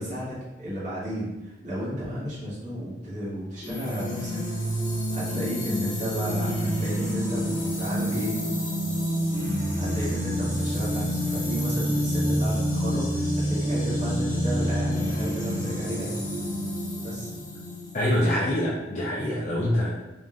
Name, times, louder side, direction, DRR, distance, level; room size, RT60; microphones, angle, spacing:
voice 1, 0.0-4.4 5.1-8.4 9.7-16.2 17.0-17.3, equal, 45° right, -9 dB, 1.5 m, -33 dB
sound 1, 3.6-18.3, equal, 20° left, 1.2 m, -28 dB
voice 2, 17.9-19.9, left 1 dB, 40° left, -6 dB, 0.5 m, -25 dB
3.7 x 2.5 x 3.6 m, 1.0 s
head